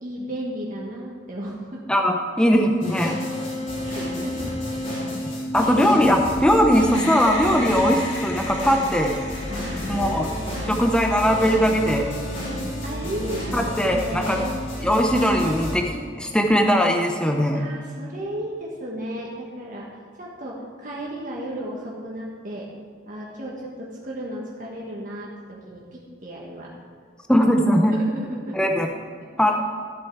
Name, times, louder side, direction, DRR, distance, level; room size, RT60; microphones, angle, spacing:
voice 1, 0.0-1.8 3.8-4.5 5.6-5.7 9.5-10.2 10.5-10.8 12.8-14.3 17.5-19.9 20.2-22.7 23.1-25.3 25.7-26.7 27.9-28.6, right 1 dB, 45° right, -4 dB, 1.5 m, -34 dB
voice 2, 1.9-3.2 5.5-9.2 9.9-10.3 10.7-12.1 13.5-14.4 14.8-17.6 27.3-28.0 28.5-28.9 29.4-29.6, equal, 5° left, 2 dB, 0.7 m, -20 dB
sound 1, 2.8-15.8, left 1 dB, 45° left, 3.4 m, -30 dB
sound 2, 6.9-12.4, left 2 dB, 75° left, 2.0 m, -38 dB
13.5 x 8.2 x 4.6 m, 2.1 s
head